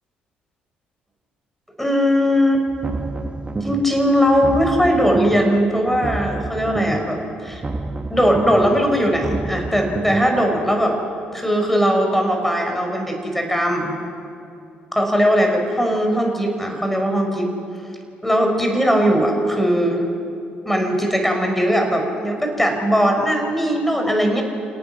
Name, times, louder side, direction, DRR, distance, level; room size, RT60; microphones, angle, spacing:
voice 1, 1.8-2.6 3.6-7.6 8.1-11.0 11.3-13.9 14.9-17.5 18.2-20.0 20.6-24.4, equal, 5° left, 2 dB, 6.2 m, -19 dB
sound 1, 2.7-4.0 4.3-5.6 5.9-7.2 7.5-10.3, right 2 dB, 25° right, 1.3 m, -29 dB
29.5 x 18.0 x 6.3 m, 2.6 s
figure-of-eight pair, 50°, 5 cm